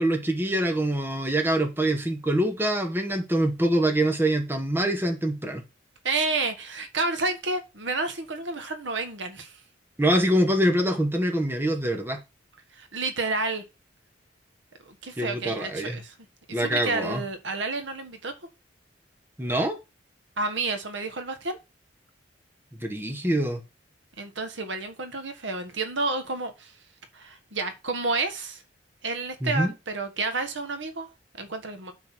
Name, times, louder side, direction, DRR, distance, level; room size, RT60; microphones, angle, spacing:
voice 1, 0.0-5.6 10.0-12.2 15.2-16.0 16.5-17.2 19.4-19.8 22.8-23.6 29.4-29.7, right 1 dB, 10° right, 1.1 m, -24 dB
voice 2, 6.0-9.6 12.7-13.6 14.8-16.1 16.5-18.3 20.4-21.6 24.2-26.7 27.1-28.6 29.0-31.1 31.3-31.9, right 3 dB, 70° right, 1.4 m, -30 dB
9.3 x 3.9 x 6.0 m
head